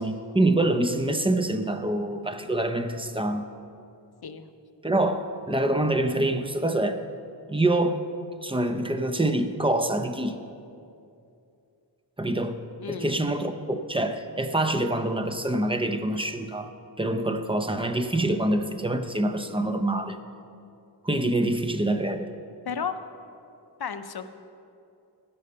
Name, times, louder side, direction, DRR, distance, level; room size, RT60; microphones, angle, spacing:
voice 1, 0.0-3.4 4.8-7.0 7.5-8.0 8.4-10.4 12.2-12.6 12.9-16.7 17.0-20.2 21.0-22.3, right 1 dB, 10° right, 8 dB, 0.6 m, -25 dB
voice 2, 12.8-13.2 22.6-23.0 23.8-24.3, left 6 dB, 55° left, 10 dB, 0.7 m, -33 dB
16.0 x 5.5 x 6.7 m, 2.6 s
wide cardioid pair, 90°, 44 cm